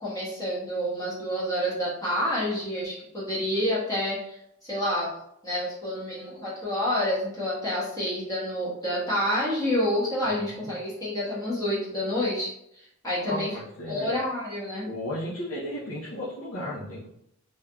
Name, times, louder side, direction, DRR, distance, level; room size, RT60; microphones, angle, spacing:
voice 1, 0.0-4.4 4.7-5.1 5.4-13.6 13.9-14.8, left 1 dB, 15° left, -8 dB, 1.2 m, -28 dB
voice 2, 10.2-10.7 13.2-14.2 14.8-17.1, left 1 dB, 80° left, -9 dB, 0.8 m, -35 dB
3.4 x 2.6 x 2.3 m, 0.75 s
head